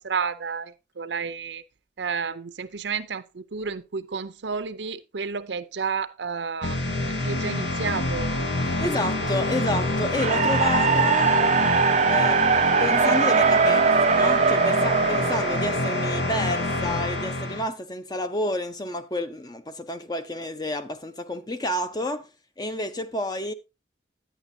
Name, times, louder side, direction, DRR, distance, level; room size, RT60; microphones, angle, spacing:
voice 1, 0.0-1.6 2.0-6.8 7.2-8.3, right 5 dB, 80° right, 0.7 m, -31 dB
sound 1, 6.6-17.6, left 2 dB, 75° left, 1.2 m, -26 dB
voice 2, 8.8-11.3 12.0-12.4 12.8-22.3 22.6-23.5, left 1 dB, 20° left, 0.7 m, -30 dB
sound 2, 10.1-16.3, right 5 dB, 40° right, 0.4 m, -21 dB
10.0 x 9.9 x 2.7 m
head